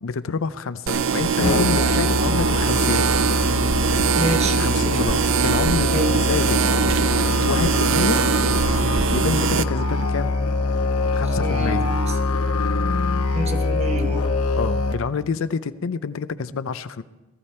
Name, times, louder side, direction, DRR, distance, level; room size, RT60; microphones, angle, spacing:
voice 1, 0.0-3.1 4.5-6.6 7.4-8.2 9.1-10.4 11.1-11.9 14.6-17.0, left 5 dB, 65° left, 13 dB, 0.5 m, -27 dB
sound 1, 0.9-9.6, right 6 dB, 60° right, 0.5 m, -22 dB
Musical instrument, 1.4-14.9, left 3 dB, 85° left, 1.1 m, -23 dB
voice 2, 4.2-4.6 5.9-6.2 11.4-12.1 13.3-14.2, right 1 dB, 30° right, 6 dB, 1.0 m, -27 dB
18.0 x 14.0 x 4.3 m, 1.1 s
head